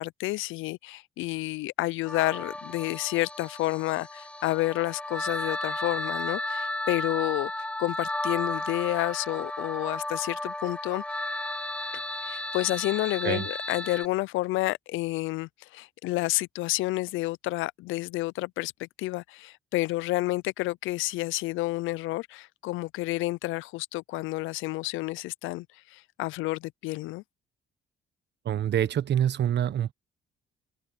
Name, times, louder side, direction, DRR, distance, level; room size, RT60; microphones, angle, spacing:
voice 1, 0.0-11.0 12.2-27.2, left 19 dB, 90° left, 0.4 m, -30 dB
sound 1, 2.1-14.1, left 1 dB, 5° left, 0.7 m, -34 dB
voice 2, 28.4-29.9, right 10 dB, 60° right, 1.2 m, -26 dB
open air
cardioid pair, 90°, 20 cm